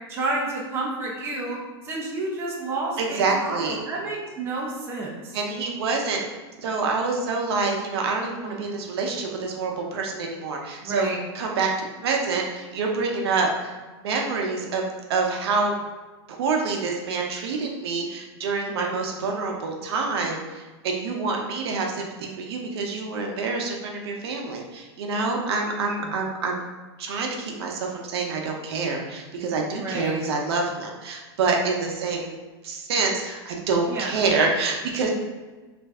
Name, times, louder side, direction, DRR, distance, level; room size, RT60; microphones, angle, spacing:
voice 1, 0.1-1.6 1.8-5.4 8.4-8.6 10.8-11.2 18.7-19.0 26.0-26.1 29.8-30.2 33.9-34.1, right 2 dB, 15° right, -3 dB, 0.6 m, -30 dB
voice 2, 3.0-3.8 5.3-6.2 6.6-11.1 11.3-11.7 12.0-13.7 14.0-15.8 16.3-26.6 27.0-32.3 32.6-35.1, right 4 dB, 65° right, 1 dB, 0.7 m, -27 dB
3.1 x 2.6 x 3.5 m, 1.3 s
supercardioid pair, 150°, 14 cm